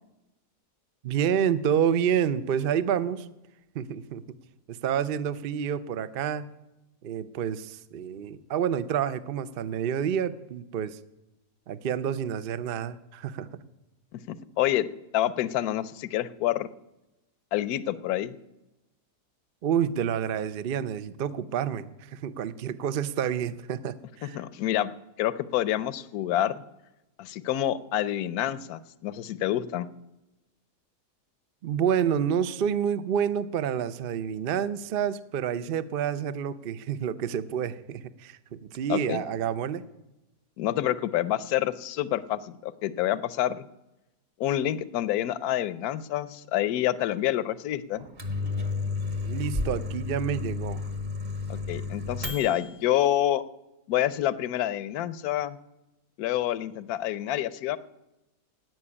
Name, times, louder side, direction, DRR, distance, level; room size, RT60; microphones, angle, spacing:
voice 1, 1.0-3.3 3.7-4.2 4.7-6.5 7.0-11.0 11.7-13.5 19.6-24.4 31.6-39.8 49.3-50.8, right 8 dB, 55° right, 14 dB, 0.6 m, -28 dB
voice 2, 14.1-14.9 15.1-16.7 17.5-18.4 24.3-24.9 25.2-26.5 27.2-29.9 38.9-39.2 40.6-43.7 44.4-48.0 51.5-53.4 53.9-55.6 56.2-57.8, left 12 dB, 70° left, 16 dB, 1.1 m, -28 dB
Microwave oven, 48.0-52.8, left 3 dB, 30° right, 1.5 m, -32 dB
17.0 x 6.1 x 9.8 m, 0.95 s
omnidirectional pair, 1.7 m